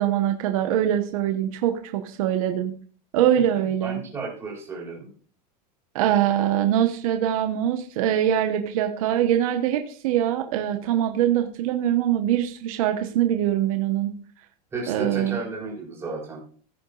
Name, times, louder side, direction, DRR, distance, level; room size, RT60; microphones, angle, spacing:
voice 1, 0.0-2.7 3.1-4.0 5.9-14.1 14.9-15.4, right 11 dB, 55° right, 6 dB, 1.2 m, -23 dB
voice 2, 3.8-5.1 14.7-16.4, right 3 dB, 10° right, -2 dB, 4.2 m, -33 dB
16.5 x 7.2 x 2.5 m, 0.43 s
supercardioid pair, 175°, 21 cm